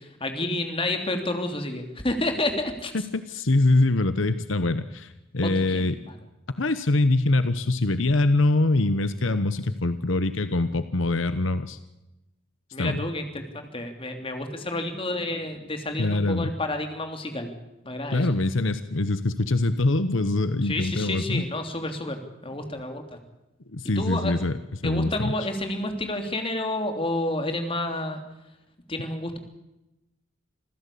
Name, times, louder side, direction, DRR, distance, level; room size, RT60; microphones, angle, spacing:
voice 1, 0.0-2.9 5.4-6.1 12.7-17.5 17.8-18.3 20.6-23.2 23.8-24.3 24.8-28.2 28.9-29.4, left 1 dB, 30° left, 5 dB, 3.0 m, -30 dB
voice 2, 3.1-6.0 6.5-11.8 12.8-13.0 16.0-16.5 18.1-21.5 23.7-24.5 24.8-25.3, left 2 dB, 75° left, 12 dB, 1.0 m, -24 dB
26.5 x 15.5 x 8.5 m, 0.94 s
head